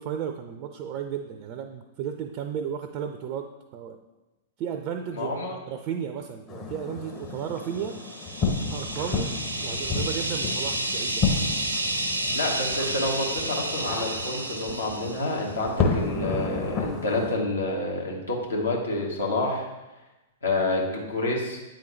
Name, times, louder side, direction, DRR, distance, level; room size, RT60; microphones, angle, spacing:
voice 1, 0.0-4.0 4.6-8.0 8.7-11.2, right 8 dB, 40° right, 6 dB, 0.4 m, -34 dB
voice 2, 5.1-5.6 12.3-19.7 20.4-21.6, left 2 dB, 75° left, -2 dB, 1.3 m, -28 dB
sound 1, 6.5-17.4, left 4 dB, 30° left, 0.9 m, -31 dB
sound 2, 7.7-15.5, right 1 dB, 85° right, 0.6 m, -31 dB
8.5 x 3.8 x 3.1 m, 1.1 s
figure-of-eight pair, 100°, 0 cm